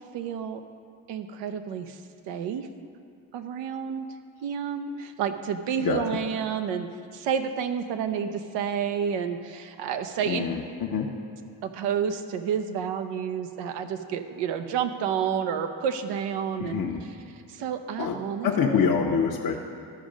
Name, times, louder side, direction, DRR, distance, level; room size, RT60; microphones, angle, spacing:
voice 1, 0.1-0.6 1.1-2.0 2.3-2.7 3.3-4.1 4.4-6.9 7.1-10.4 11.7-16.8 17.5-18.9, right 7 dB, 85° right, 7 dB, 0.7 m, -30 dB
voice 2, 10.3-11.1 16.6-17.0 18.0-18.2 18.4-19.6, left 6 dB, 50° left, -1 dB, 0.9 m, -25 dB
12.5 x 5.2 x 5.0 m, 2.5 s
supercardioid pair, 60°, 43 cm